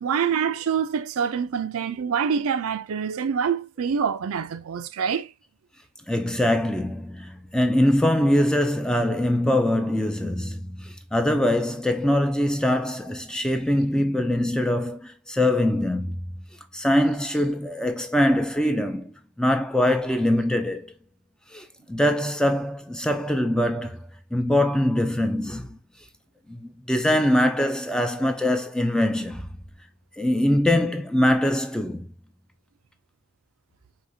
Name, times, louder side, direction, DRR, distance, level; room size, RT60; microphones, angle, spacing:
voice 1, 0.0-5.3, right 7 dB, 75° right, 0.4 m, -26 dB
voice 2, 6.1-16.3 16.7-20.9 21.5-25.8 26.5-29.5 30.2-32.1, left 1 dB, 5° left, 0.3 m, -23 dB
5.0 x 3.1 x 2.6 m
head